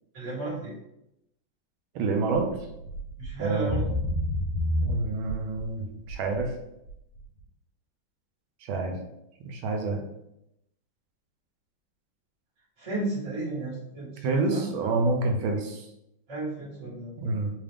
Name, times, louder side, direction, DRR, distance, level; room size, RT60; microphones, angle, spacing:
voice 1, 0.1-0.8 3.2-3.8 12.8-14.9 16.3-17.1, right 2 dB, 20° right, -10 dB, 1.0 m, -34 dB
voice 2, 1.9-2.5 3.4-3.9 4.8-6.5 8.6-9.0 9.5-10.0 14.2-15.9 17.2-17.5, right 3 dB, 80° right, 3 dB, 1.4 m, -27 dB
sound 1, 2.3-2.6 2.9-3.3 3.6-5.6 6.1-6.4 6.9-7.0, left 1 dB, 80° left, 1.6 m, -28 dB
3.7 x 2.4 x 3.3 m, 0.83 s
omnidirectional pair, 2.4 m